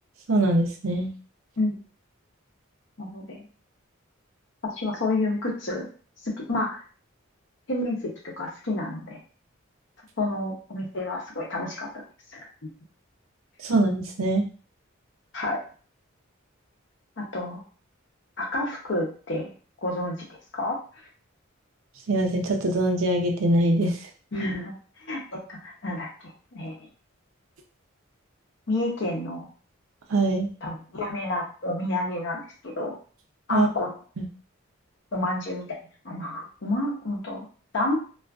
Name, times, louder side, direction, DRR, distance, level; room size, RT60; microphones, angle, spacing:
voice 1, 0.3-1.1 13.6-14.4 22.1-23.9 30.1-30.5 33.5-33.7 34.2-34.3, right 1 dB, 80° right, 3 dB, 0.5 m, -23 dB
voice 2, 3.0-3.4 4.8-5.9 6.2-6.8 7.7-9.2 10.2-11.9 12.3-12.7 15.3-15.6 17.2-17.6 18.4-19.5 19.8-20.2 20.5-20.8 24.3-24.7 25.1-26.1 26.5-26.8 28.7-29.5 30.6-32.9 33.5-33.9 35.1-35.7 36.0-37.4 37.7-38.0, left 2 dB, 60° left, -1 dB, 0.7 m, -29 dB
2.4 x 2.3 x 2.3 m, 0.39 s
head